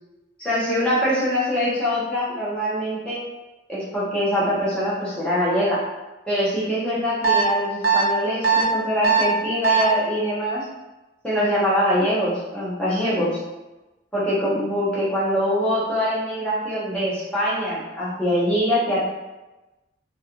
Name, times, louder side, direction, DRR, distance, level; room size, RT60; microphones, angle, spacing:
voice 1, 0.4-3.2 3.7-5.8 6.3-10.6 11.2-13.4 14.1-19.0, equal, 5° left, -10 dB, 1.0 m, -23 dB
sound 1, 7.2-7.4 7.8-8.0 8.4-8.6 9.0-9.2 9.6-9.8, right 6 dB, 60° right, 0.7 m, -18 dB
3.1 x 2.9 x 2.5 m, 1.1 s
head